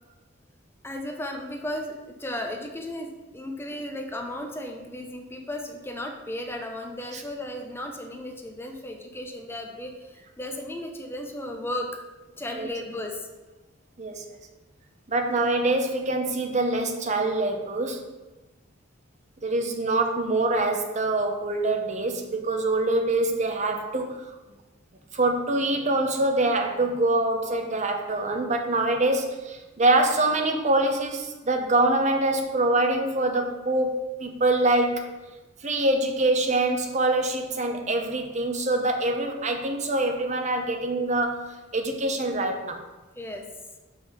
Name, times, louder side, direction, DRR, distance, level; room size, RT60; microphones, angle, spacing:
voice 1, 0.8-11.9 12.4-13.3 29.1-29.2 43.1-43.4, left 1 dB, 10° left, 2 dB, 0.9 m, -35 dB
voice 2, 15.1-18.0 19.4-24.2 25.1-35.0 35.6-41.5 41.7-42.8, right 2 dB, 35° right, 4 dB, 0.9 m, -24 dB
5.6 x 5.4 x 5.5 m, 1.1 s
head